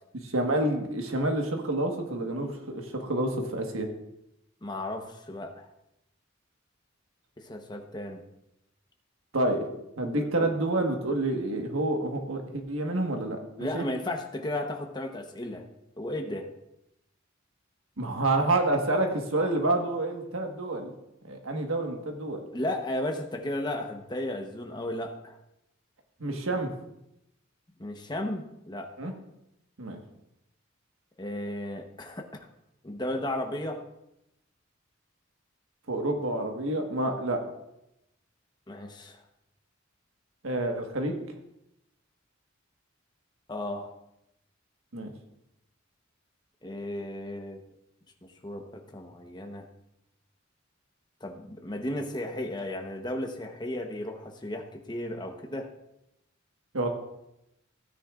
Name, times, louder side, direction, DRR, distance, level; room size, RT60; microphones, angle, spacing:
voice 1, 0.2-3.9 9.3-9.7 10.0-13.4 13.7-13.8 18.0-20.9 21.2-22.4 26.2-26.7 29.0-29.1 29.8-30.0 35.9-37.4 40.4-41.2 44.9-45.1 56.7-56.9, right 2 dB, 85° right, 3 dB, 1.5 m, -28 dB
voice 2, 4.6-5.7 7.4-8.2 10.4-10.5 13.6-15.6 16.0-16.5 22.5-25.4 27.8-29.2 31.2-32.5 32.8-33.8 38.7-39.2 43.5-43.9 46.6-47.6 48.2-49.7 51.2-55.7, left 1 dB, 20° left, 3 dB, 1.0 m, -34 dB
15.5 x 9.5 x 2.5 m, 0.86 s
head